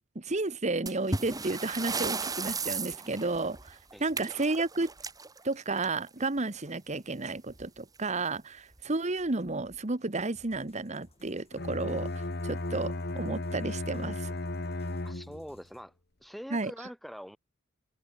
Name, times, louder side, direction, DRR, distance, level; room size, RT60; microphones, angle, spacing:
voice 1, 0.1-4.9 5.4-14.3 16.5-16.7, right 3 dB, 35° right, 1.2 m, -32 dB
sound 1, 0.9-6.2 7.5-7.7 8.0-8.1 8.7-8.8 9.5-9.8, right 4 dB, 20° right, 1.6 m, -36 dB
sound 2, 10.3-15.8, left 1 dB, 30° left, 5.5 m, -62 dB
Bowed string instrument, 11.5-15.6, left 2 dB, 55° left, 1.7 m, -35 dB
voice 2, 15.0-15.9 16.2-17.4, equal, ahead, 0.9 m, -44 dB
head